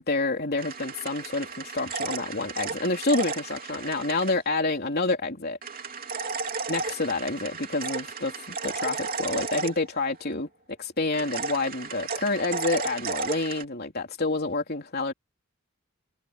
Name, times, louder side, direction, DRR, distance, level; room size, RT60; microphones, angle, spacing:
voice 1, 0.0-5.6 6.7-10.5 10.8-15.1, left 3 dB, 50° left, 3.5 m, -28 dB
sound 1, 0.6-4.4 5.6-10.2 11.1-13.6, right 4 dB, 45° right, 3.5 m, -34 dB
head